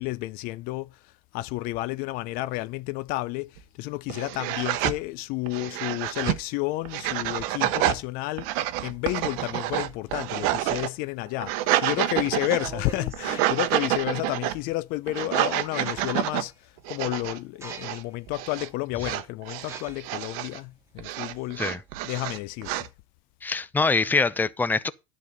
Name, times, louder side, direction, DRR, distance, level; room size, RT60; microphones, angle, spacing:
voice 1, 0.0-21.6 22.0-22.9, left 19 dB, 60° left, 0.5 m, -31 dB
sound 1, 3.6-3.7 4.1-5.0 5.5-6.4 6.9-8.0 8.4-10.9 11.3-12.8 13.1-14.6 15.1-16.4 16.9-17.4 17.7-18.0 18.3-18.7 19.0-20.6 21.0-22.9, right 14 dB, 65° right, 0.9 m, -28 dB
sound 2, 11.8-11.9 12.3-13.6 15.2-15.3 15.6-16.5 17.0-17.2 17.6-18.2 18.7-18.8 19.6-21.9, right 4 dB, 15° right, 1.8 m, -43 dB
voice 2, 23.4-24.9, left 3 dB, 10° left, 0.6 m, -24 dB
10.5 x 4.1 x 6.4 m
supercardioid pair, 100°, 17 cm